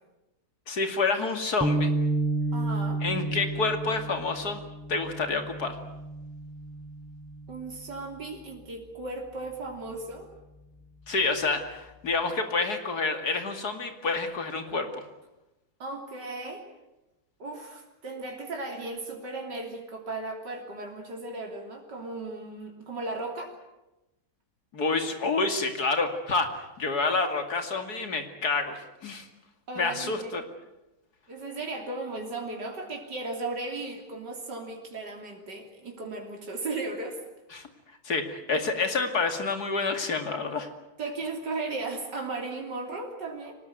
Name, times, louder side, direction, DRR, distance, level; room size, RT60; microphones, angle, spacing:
voice 1, 0.7-1.9 3.0-4.6 4.9-5.8 11.1-15.0 24.7-29.3 29.8-30.4 37.5-37.7 38.0-40.7, left 3 dB, 65° left, 6 dB, 2.9 m, -28 dB
sound 1, 1.6-8.0, right 2 dB, 5° right, 0.7 m, -31 dB
voice 2, 2.5-3.0 7.5-10.3 15.8-16.6 17.4-23.5 29.7-30.4 31.3-37.2 41.0-43.5, right 2 dB, 85° right, 1 dB, 3.8 m, -36 dB
24.5 x 19.0 x 9.3 m, 0.98 s
omnidirectional pair, 1.8 m